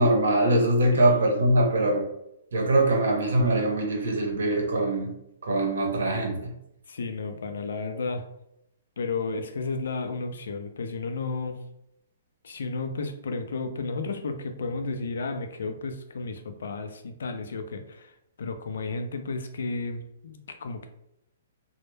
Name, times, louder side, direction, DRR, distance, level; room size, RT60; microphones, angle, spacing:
voice 1, 0.0-2.1 2.5-5.1 5.4-6.5, right 1 dB, 80° right, 1 dB, 0.7 m, -23 dB
voice 2, 6.9-8.3 9.0-11.6 12.4-20.9, left 3 dB, 80° left, 7 dB, 0.4 m, -33 dB
2.1 x 2.0 x 3.1 m, 0.80 s
hypercardioid pair, 150°, 0 cm